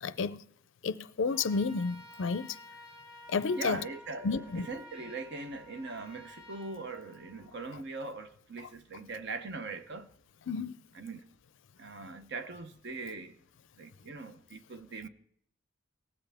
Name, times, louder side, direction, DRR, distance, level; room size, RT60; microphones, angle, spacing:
voice 1, 0.0-0.4 0.8-2.6 3.3-3.8 4.2-4.7 10.5-10.8, left 4 dB, 60° left, 0.4 m, -31 dB
Trumpet, 1.2-7.7, left 1 dB, 5° right, 1.9 m, -52 dB
voice 2, 3.6-10.1 10.9-11.2 11.8-13.3 13.8-15.1, right 3 dB, 55° right, 0.8 m, -41 dB
19.0 x 7.9 x 3.5 m
head